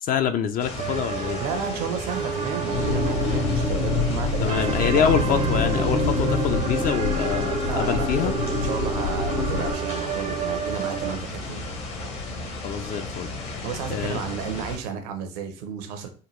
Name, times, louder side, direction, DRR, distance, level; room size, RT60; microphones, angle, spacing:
voice 1, 0.0-1.4 4.4-8.3 12.6-13.3 13.9-14.2, left 8 dB, 45° left, 0.4 m, -25 dB
sound 1, 0.6-14.8, left 3 dB, 65° left, 1.2 m, -35 dB
sound 2, 0.8-11.2, right 7 dB, 35° right, 0.5 m, -31 dB
voice 2, 1.4-5.1 7.7-11.6 13.6-16.1, right 6 dB, 75° right, 0.7 m, -32 dB
sound 3, 2.7-9.7, left 4 dB, 85° left, 1.1 m, -26 dB
3.9 x 2.3 x 3.1 m
hypercardioid pair, 65°, 21 cm